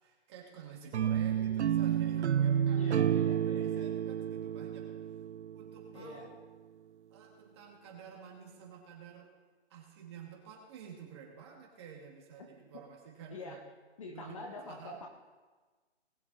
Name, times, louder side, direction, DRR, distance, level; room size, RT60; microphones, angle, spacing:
voice 1, 0.0-4.9 5.5-6.3 7.1-9.3 9.7-13.6 14.1-15.0, right 7 dB, 25° right, 0 dB, 2.1 m, -50 dB
sound 1, 0.9-6.0, right 9 dB, 85° right, 0.5 m, -30 dB
voice 2, 2.7-4.0 5.9-6.3 12.4-12.5 13.3-13.7 14.0-15.1, left 3 dB, 30° left, 4 dB, 1.0 m, -46 dB
19.5 x 7.1 x 4.1 m, 1.3 s
hypercardioid pair, 160°, 33 cm